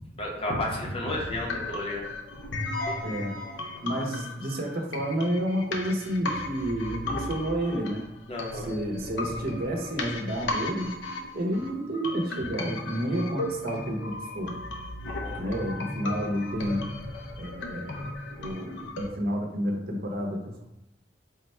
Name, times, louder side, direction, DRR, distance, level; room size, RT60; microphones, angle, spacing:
voice 1, 0.1-2.0 8.3-8.7 15.1-15.4, left 1 dB, 30° left, -2 dB, 0.8 m, -32 dB
sound 1, 1.1-19.1, left 2 dB, 75° left, 0.6 m, -36 dB
voice 2, 3.0-3.4 3.8-8.0 8.5-10.9 11.3-14.5 15.4-16.9 17.4-18.1 18.4-20.6, equal, 55° right, 1 dB, 0.7 m, -30 dB
3.6 x 2.2 x 4.2 m, 0.85 s
head